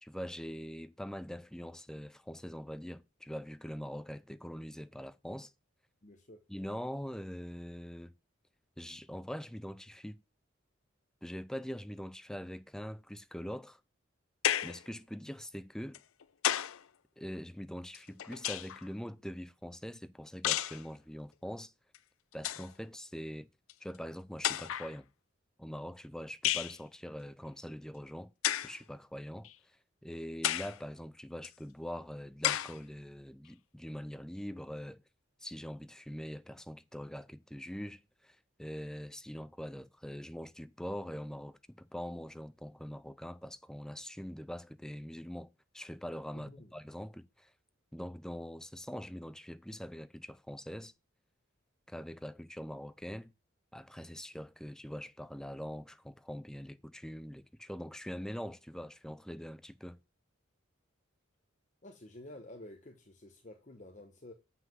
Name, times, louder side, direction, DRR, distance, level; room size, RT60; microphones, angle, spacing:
voice 1, 0.0-5.5 6.5-8.1 8.8-10.2 11.2-13.8 14.6-16.0 17.2-21.7 22.3-23.5 23.8-25.1 25.6-28.3 28.6-29.5 30.0-35.0 35.4-47.5 47.9-50.9 51.9-53.3 53.7-60.0, equal, 5° left, 0.4 m, -43 dB
voice 2, 6.0-6.4 46.3-46.7 61.8-64.3, left 1 dB, 35° left, 1.0 m, -51 dB
sound 1, 14.4-14.9 15.9-16.8 17.9-18.9 20.4-20.8 21.9-22.0 22.3-22.7 23.7-23.8 24.4-24.9 26.4-26.8 28.4-28.8 29.4-29.5 30.4-30.8 31.4-31.5 32.4-32.8, left 12 dB, 85° left, 0.5 m, -32 dB
7.8 x 5.7 x 7.7 m
head